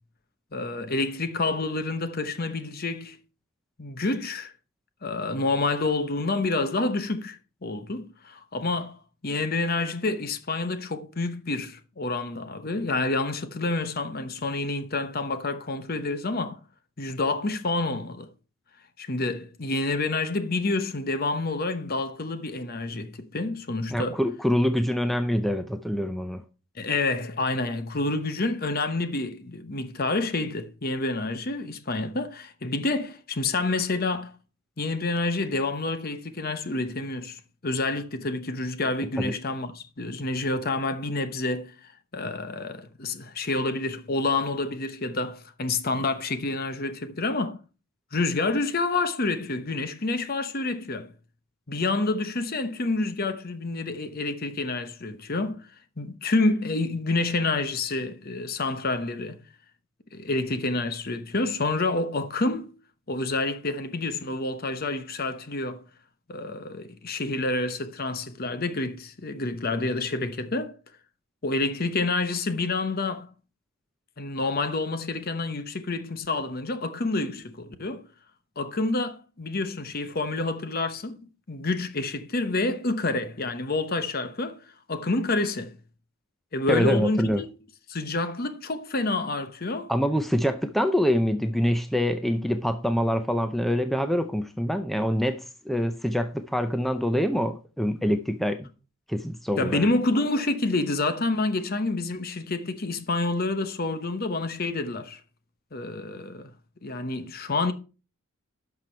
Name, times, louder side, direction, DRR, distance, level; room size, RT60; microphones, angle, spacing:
voice 1, 0.5-3.2 3.8-4.5 5.0-16.6 17.0-18.3 19.0-24.2 26.8-34.3 34.8-47.6 48.1-51.1 51.7-55.7 56.0-59.4 60.1-62.7 63.1-65.8 66.3-70.8 71.4-73.3 74.2-78.0 78.6-81.2 81.5-84.6 84.9-85.7 86.5-87.5 87.9-89.9 99.6-105.2 105.7-106.5 106.8-107.7, left 2 dB, 45° left, 0.9 m, -28 dB
voice 2, 23.9-26.4 39.2-39.3 86.7-87.4 89.9-98.7 99.1-99.9, equal, ahead, 0.5 m, -25 dB
11.0 x 6.0 x 4.4 m
head